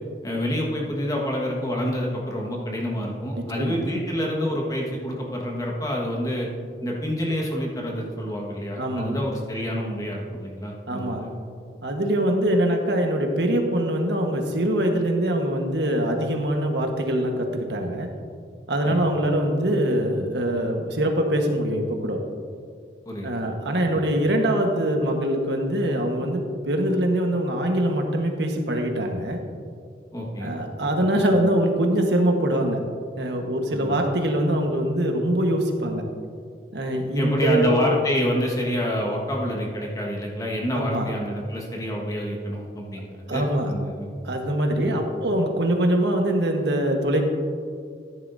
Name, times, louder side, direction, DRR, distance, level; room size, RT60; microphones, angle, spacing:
voice 1, 0.2-6.5 6.8-11.3 18.8-19.0 23.0-23.4 23.9-24.1 30.1-30.5 33.7-33.9 37.1-44.1 44.8-45.0, equal, 20° left, -1 dB, 1.5 m, -27 dB
voice 2, 3.3-3.8 8.8-9.2 10.9-11.2 11.8-18.1 18.7-22.2 23.2-29.4 30.4-32.8 33.2-36.0 36.7-37.7 40.7-41.1 43.3-43.7 44.2-47.2, right 1 dB, 80° right, 3 dB, 1.3 m, -23 dB
13.5 x 10.5 x 2.7 m, 2.2 s
head